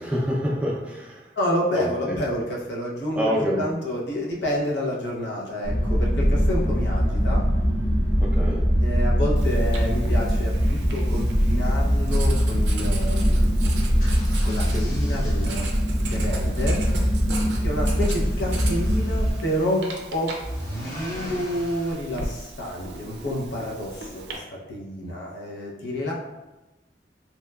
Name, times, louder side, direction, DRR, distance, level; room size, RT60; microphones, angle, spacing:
voice 1, 0.0-1.3 1.7-2.2 3.2-3.6 8.2-8.6, equal, 5° right, -4 dB, 0.3 m, -27 dB
voice 2, 1.4-7.4 8.8-13.5 14.4-15.7 16.1-16.8 17.6-20.3 20.8-26.1, equal, 80° left, -3 dB, 0.6 m, -29 dB
sound 1, 5.6-19.3, equal, 15° left, 0.7 m, -22 dB
Writing, 9.4-24.4, right 3 dB, 80° right, 0.4 m, -38 dB
sound 2, 13.9-21.9, equal, 55° left, 1.1 m, -40 dB
2.8 x 2.1 x 2.2 m, 1.1 s
head